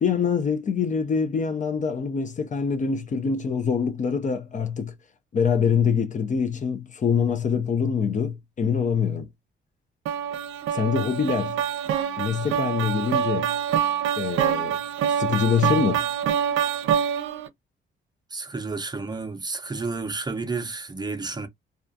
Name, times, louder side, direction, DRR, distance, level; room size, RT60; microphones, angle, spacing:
voice 1, 0.0-4.9 5.3-9.3 10.7-11.6 12.2-13.5 14.2-14.8 15.1-16.1, left 6 dB, 40° left, 0.5 m, -24 dB
sound 1, 10.1-17.5, right 9 dB, 80° right, 0.5 m, -25 dB
voice 2, 18.3-21.5, right 3 dB, 20° right, 0.5 m, -31 dB
2.4 x 2.3 x 2.5 m
cardioid pair, 90°, 20 cm